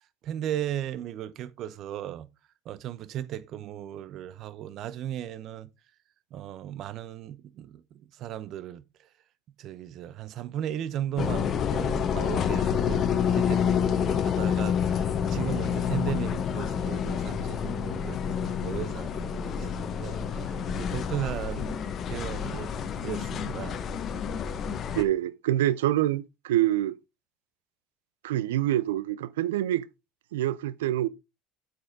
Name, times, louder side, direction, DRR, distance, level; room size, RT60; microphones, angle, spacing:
voice 1, 0.2-2.3 2.7-5.7 6.3-8.8 9.6-21.7 22.1-22.7 23.0-23.8, right 11 dB, 60° right, 0.8 m, -36 dB
sound 1, 11.2-25.0, left 7 dB, 50° left, 1.2 m, -28 dB
voice 2, 25.0-27.0 28.2-29.9 30.3-31.1, right 13 dB, 85° right, 0.5 m, -26 dB
7.8 x 7.7 x 3.7 m
hypercardioid pair, 75°, 0 cm